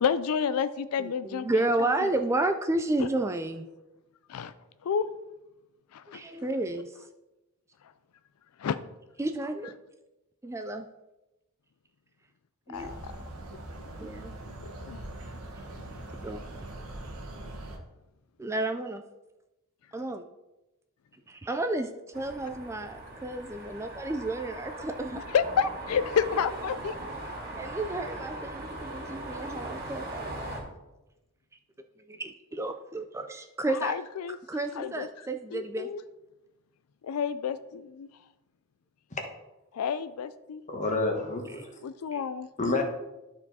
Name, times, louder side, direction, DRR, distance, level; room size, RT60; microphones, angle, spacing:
voice 1, 0.0-1.6 3.0-3.1 4.3-4.5 4.8-5.1 5.9-6.2 8.6-8.8 12.7-13.1 14.9-15.0 25.3-27.0 33.7-34.4 34.8-35.1 35.5-36.0 37.0-38.1 39.7-40.6 41.8-42.5, left 7 dB, 80° left, 12 dB, 0.4 m, -29 dB
voice 2, 1.0-3.7 6.1-7.0 9.2-9.7 10.4-10.9 12.7-12.9 14.0-14.3 16.0-16.4 18.4-19.0 19.9-20.2 21.3-25.2 27.5-30.3 32.1-34.0 34.5-35.9 42.1-42.3, right 2 dB, 10° right, 7 dB, 0.3 m, -32 dB
sound 1, 12.7-17.8, right 1 dB, 80° right, 1.3 m, -42 dB
sound 2, 22.1-30.6, right 1 dB, 45° right, 2.0 m, -39 dB
voice 3, 40.7-41.8 42.6-42.8, left 3 dB, 35° left, 2 dB, 1.3 m, -29 dB
12.0 x 4.6 x 4.1 m, 1.0 s
head